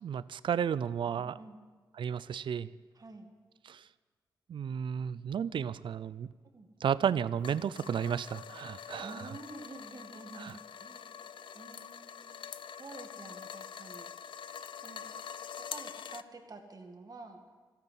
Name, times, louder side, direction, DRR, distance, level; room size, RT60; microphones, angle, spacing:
voice 1, 0.0-1.3 2.0-2.7 3.7-3.9 4.5-6.3 6.8-9.2 10.4-10.6, right 8 dB, 70° right, 18 dB, 0.4 m, -33 dB
voice 2, 1.0-1.6 2.9-3.3 6.4-6.7 9.0-11.2 11.5-12.4 12.8-14.1 14.8-15.0 15.6-17.4, right 3 dB, 45° right, 4 dB, 2.2 m, -49 dB
sound 1, 7.4-16.2, left 8 dB, 70° left, 0.5 m, -45 dB
13.5 x 9.3 x 8.0 m, 1.5 s
cardioid pair, 50°, 9 cm